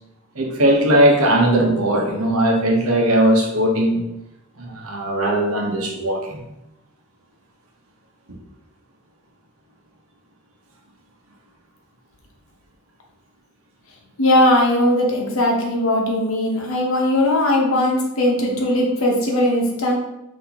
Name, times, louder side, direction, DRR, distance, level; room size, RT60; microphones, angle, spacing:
voice 1, 0.3-4.0 4.6-6.4, right 1 dB, 85° right, 1 dB, 1.0 m, -18 dB
voice 2, 14.2-20.0, left 1 dB, 70° left, 0 dB, 1.0 m, -19 dB
5.7 x 2.8 x 2.9 m, 0.88 s
head